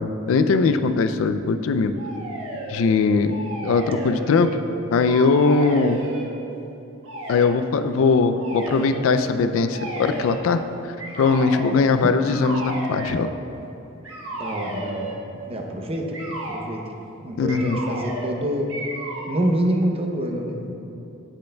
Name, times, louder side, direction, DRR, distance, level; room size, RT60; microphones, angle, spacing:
voice 1, 0.0-1.9 2.7-3.3 3.6-4.6 4.9-6.0 7.3-10.6 11.2-13.3 17.4-17.8, left 4 dB, 75° left, 10 dB, 0.3 m, -20 dB
sound 1, 2.0-2.8 3.2-4.7 5.0-6.3 7.0-7.5 8.4-9.0 9.7-10.5 11.0-11.7 12.3-13.2 14.0-15.2 16.1-16.6 17.5-18.4 18.7-19.4, right 1 dB, 80° right, 1.2 m, -33 dB
voice 2, 11.8-12.1 14.3-15.2 15.4-18.7 19.3-20.7, right 1 dB, 30° right, 2 dB, 0.6 m, -27 dB
8.7 x 7.7 x 2.2 m, 2.9 s
head